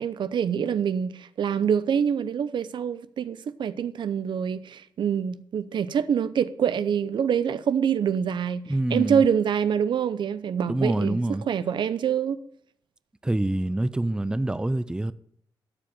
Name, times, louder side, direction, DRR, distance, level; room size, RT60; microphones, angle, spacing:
voice 1, 0.0-8.6 8.9-12.4, right 8 dB, 70° right, 0.6 m, -25 dB
voice 2, 8.7-9.2 10.7-11.4 13.2-15.1, right 1 dB, 10° right, 0.5 m, -26 dB
13.0 x 4.9 x 8.9 m
cardioid pair, 75°, 8 cm